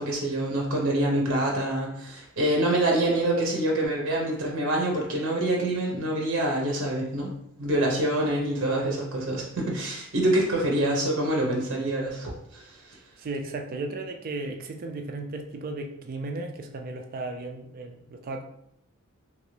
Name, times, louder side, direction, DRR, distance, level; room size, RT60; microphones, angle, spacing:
voice 1, 0.0-7.3 7.6-12.6, right 1 dB, 60° right, -1 dB, 0.7 m, -26 dB
voice 2, 13.2-18.4, right 2 dB, 40° right, 4 dB, 0.3 m, -35 dB
2.9 x 2.6 x 3.2 m, 0.76 s
head